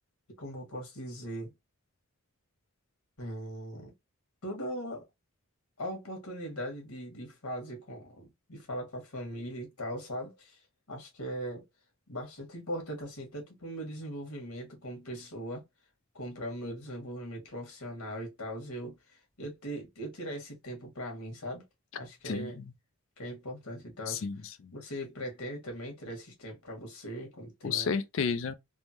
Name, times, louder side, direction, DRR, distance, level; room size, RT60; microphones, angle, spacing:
voice 1, 0.4-1.5 3.2-3.9 4.4-5.0 5.8-10.6 10.9-11.7 12.1-15.6 16.1-18.9 19.4-21.6 22.0-22.6 23.2-24.2 24.7-27.9, equal, 85° left, 1.5 m, -39 dB
voice 2, 22.2-22.7 24.1-24.7 27.6-28.5, left 6 dB, 60° left, 0.4 m, -32 dB
3.5 x 2.1 x 2.8 m
head